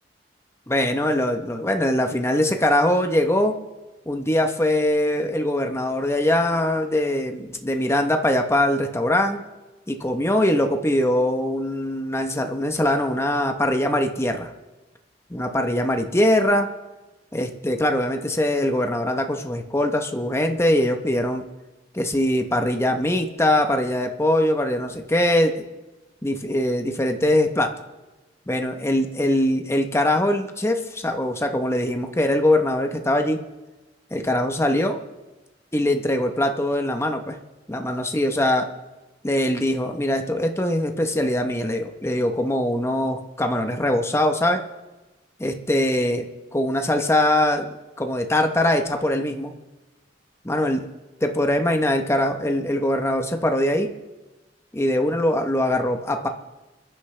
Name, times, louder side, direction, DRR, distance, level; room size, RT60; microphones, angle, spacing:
voice 1, 0.7-3.5 4.1-9.4 9.9-14.5 15.3-16.7 17.3-21.4 21.9-25.5 26.2-27.7 28.5-33.4 34.1-35.0 35.7-37.4 37.7-38.6 39.2-44.6 45.4-46.2 46.5-49.5 50.4-50.9 51.2-53.9 54.7-56.3, left 1 dB, 15° left, 5 dB, 1.0 m, -22 dB
28.5 x 10.0 x 3.4 m, 1.1 s
head